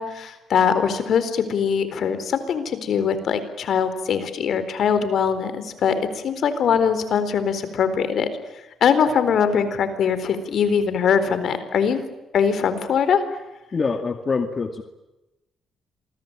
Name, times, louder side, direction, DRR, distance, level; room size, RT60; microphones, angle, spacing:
voice 1, 0.0-8.3 8.8-12.0 12.3-13.2, left 7 dB, 65° left, 11 dB, 4.0 m, -22 dB
voice 2, 13.7-14.8, left 4 dB, 35° left, 6 dB, 2.2 m, -25 dB
27.0 x 22.0 x 8.9 m, 1.0 s
cardioid pair, 90°, 0 cm